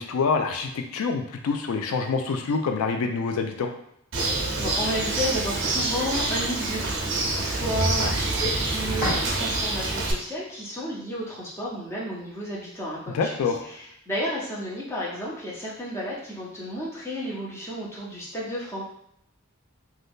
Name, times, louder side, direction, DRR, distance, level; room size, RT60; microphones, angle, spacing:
voice 1, 0.0-3.7 13.1-13.6, left 4 dB, 80° left, 5 dB, 0.4 m, -26 dB
Bird, 4.1-10.1, right 2 dB, 55° right, 0.6 m, -26 dB
voice 2, 4.6-18.8, equal, 10° left, -6 dB, 0.7 m, -32 dB
sound 1, 8.2-9.9, left 1 dB, 40° left, 1.3 m, -39 dB
2.6 x 2.3 x 3.4 m, 0.72 s
head